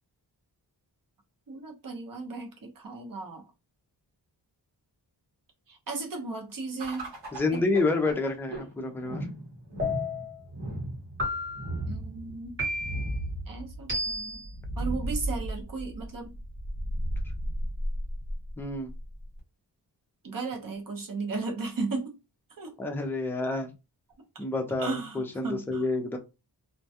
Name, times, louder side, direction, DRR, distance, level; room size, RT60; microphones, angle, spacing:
voice 1, 1.5-3.4 5.7-7.1 7.5-7.7 11.9-12.6 13.5-14.4 14.8-16.3 20.2-22.1 22.6-22.7 24.8-25.9, right 3 dB, 50° right, 0.8 m, -35 dB
sound 1, 6.8-19.4, right 1 dB, 90° right, 1.0 m, -35 dB
voice 2, 7.3-9.3 18.6-18.9 22.8-23.7 24.4-26.2, left 3 dB, 5° left, 0.3 m, -29 dB
sound 2, 9.8-10.4 11.2-11.8 12.6-13.2 13.9-14.5, left 2 dB, 30° right, 1.0 m, -32 dB
2.2 x 2.2 x 2.7 m
wide cardioid pair, 140°, 42 cm